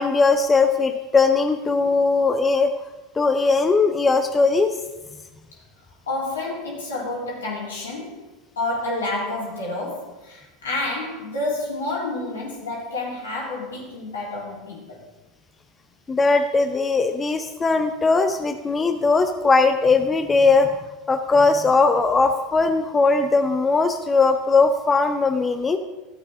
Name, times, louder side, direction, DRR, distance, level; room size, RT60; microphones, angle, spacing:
voice 1, 0.0-2.7 3.1-4.7 16.1-20.7 21.1-25.8, left 4 dB, 20° left, 7 dB, 0.7 m, -19 dB
voice 2, 6.1-8.3 8.6-15.0, left 2 dB, 80° left, -5 dB, 3.7 m, -29 dB
13.5 x 8.4 x 3.8 m, 1.1 s
hypercardioid pair, 80°, 0 cm